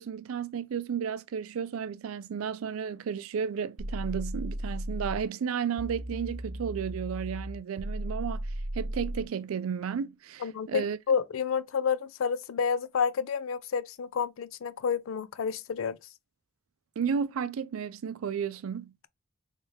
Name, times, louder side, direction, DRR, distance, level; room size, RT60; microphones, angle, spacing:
voice 1, 0.0-8.4 8.7-11.0 17.0-18.9, right 7 dB, 90° right, 0.4 m, -33 dB
sound 1, 3.8-5.2 5.8-9.2, right 1 dB, 25° right, 0.4 m, -35 dB
voice 2, 10.4-16.0, left 6 dB, 75° left, 0.4 m, -30 dB
3.3 x 2.8 x 3.3 m
head